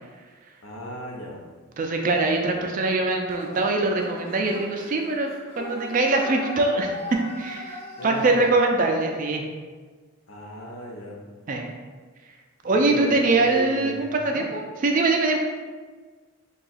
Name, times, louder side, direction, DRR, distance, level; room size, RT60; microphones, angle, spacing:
voice 1, 0.6-1.4 2.3-2.4 8.0-8.5 10.3-11.2 12.7-14.5, equal, 70° left, -1 dB, 0.6 m, -35 dB
voice 2, 1.8-6.9 7.4-9.4 11.5-11.7 12.6-15.4, right 2 dB, 40° right, 2 dB, 0.3 m, -23 dB
sound 1, 3.3-8.7, left 1 dB, 25° left, 0.6 m, -39 dB
2.7 x 2.3 x 4.0 m, 1.4 s
head